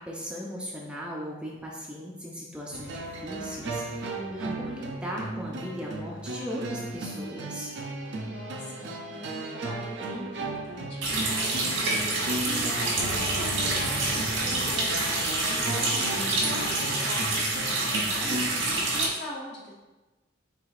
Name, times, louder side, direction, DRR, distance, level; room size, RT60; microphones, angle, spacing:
voice 1, 0.0-7.7, equal, 5° right, -3 dB, 0.4 m, -38 dB
sound 1, 2.7-18.5, right 2 dB, 60° right, 0.5 m, -35 dB
voice 2, 8.3-12.1 12.4-18.5 18.9-19.7, left 1 dB, 60° left, -4 dB, 1.0 m, -41 dB
Water tap faucet, 11.0-19.1, right 2 dB, 85° right, 1.1 m, -27 dB
4.6 x 3.4 x 2.4 m, 1.2 s
head